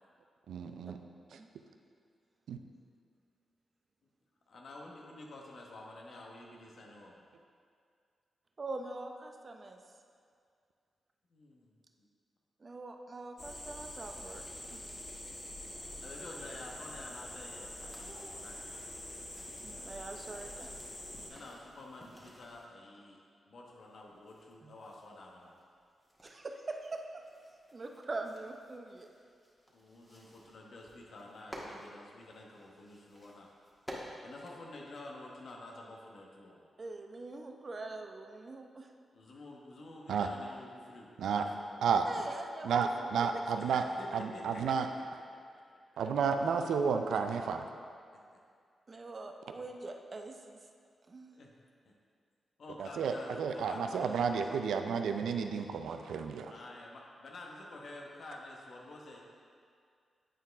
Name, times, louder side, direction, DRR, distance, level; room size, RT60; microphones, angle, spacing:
voice 1, 0.5-1.0 2.5-2.6 40.1-40.3 41.2-41.5 41.8-42.1 42.6-43.9 44.1-44.9 46.0-47.6 52.8-56.5, right 6 dB, 80° right, 6 dB, 0.4 m, -31 dB
voice 2, 4.5-7.3 11.3-11.7 12.0-12.1 15.7-18.6 21.3-23.2 23.5-25.5 29.7-33.5 34.2-36.6 39.1-41.7 43.6-45.0 45.3-45.6 51.3-51.5 51.8-51.9 52.6-54.6 56.5-59.2, left 2 dB, 65° left, -1 dB, 1.1 m, -50 dB
voice 3, 8.6-9.8 12.6-14.4 14.7-14.8 19.6-20.8 24.6-24.7 26.2-27.1 27.7-29.1 36.8-38.9 42.1-43.4 48.9-50.6 51.1-51.3, right 3 dB, 45° right, 4 dB, 0.6 m, -43 dB
sound 1, 13.4-21.3, left 1 dB, 35° left, 1.2 m, -45 dB
sound 2, 17.7-22.7 23.6-35.5, equal, 5° left, 1.5 m, -54 dB
9.0 x 4.5 x 3.5 m, 2.2 s
supercardioid pair, 45°, 0 cm